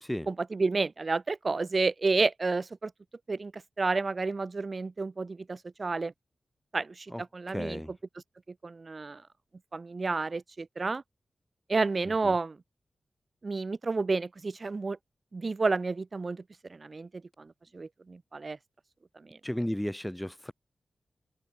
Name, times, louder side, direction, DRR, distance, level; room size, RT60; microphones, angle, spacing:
voice 1, 0.3-2.9 3.3-6.1 6.7-7.8 8.6-9.2 9.7-11.0 11.7-12.6 13.4-15.0 15.3-16.4 16.7-18.6 19.2-19.4, right 3 dB, 35° right, 1.4 m, -30 dB
voice 2, 7.5-7.9 12.2-12.3 19.4-20.5, equal, 5° left, 0.9 m, -34 dB
wide cardioid pair, 140°, 0 cm